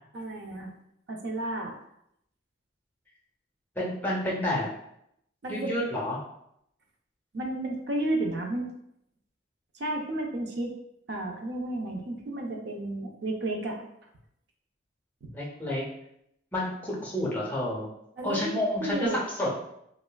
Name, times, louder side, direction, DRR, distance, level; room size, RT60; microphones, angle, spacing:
voice 1, 0.1-0.7 1.1-1.7 5.4-5.7 7.3-8.7 9.7-10.8 11.1-13.8 15.2-15.3 18.2-19.2, right 1 dB, 55° right, 1 dB, 0.4 m, -32 dB
voice 2, 3.8-4.7 5.5-6.2 15.3-15.8 16.5-17.9 18.2-19.5, left 1 dB, 10° left, -5 dB, 0.6 m, -30 dB
3.1 x 2.3 x 2.2 m, 0.76 s
head